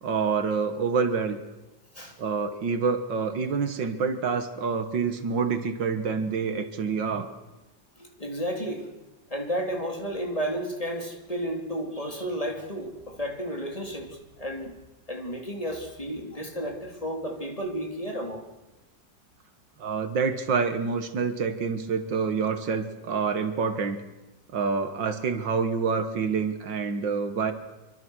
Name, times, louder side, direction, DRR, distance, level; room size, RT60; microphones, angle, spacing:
voice 1, 0.0-1.4 2.2-7.3 19.8-24.0 24.5-27.5, right 5 dB, 70° right, 9 dB, 2.1 m, -27 dB
voice 2, 8.0-8.9 9.3-14.7 15.1-18.4, equal, 20° left, 2 dB, 3.0 m, -32 dB
26.0 x 24.0 x 6.3 m, 1.1 s
omnidirectional pair, 2.0 m